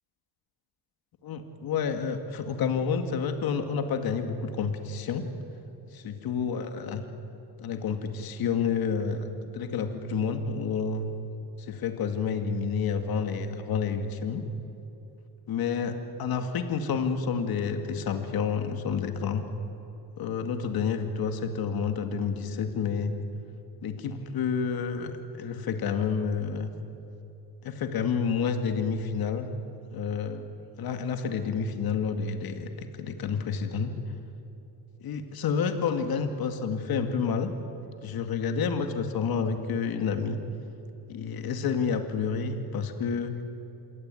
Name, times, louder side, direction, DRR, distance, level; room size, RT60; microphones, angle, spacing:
voice 1, 1.2-5.2 5.9-7.0 7.6-9.3 9.5-11.1 11.6-14.4 15.5-19.5 20.2-23.1 23.8-26.7 27.6-29.5 29.9-30.4 30.8-33.9 35.0-37.5 38.0-40.4 41.1-43.4, left 6 dB, 65° left, 6 dB, 2.3 m, -29 dB
27.5 x 22.5 x 9.2 m, 2.9 s
cardioid pair, 110°, 39 cm